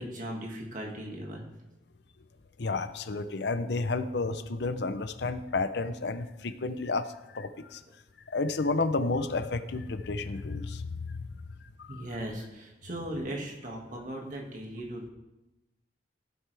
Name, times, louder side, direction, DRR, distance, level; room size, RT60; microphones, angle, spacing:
voice 1, 0.0-1.5 11.9-15.1, right 1 dB, 45° right, 0 dB, 2.0 m, -38 dB
voice 2, 2.6-7.1 7.3-7.8 8.3-10.9 11.8-12.0, left 3 dB, 65° left, 11 dB, 0.6 m, -31 dB
16.0 x 7.9 x 3.4 m, 1.0 s
head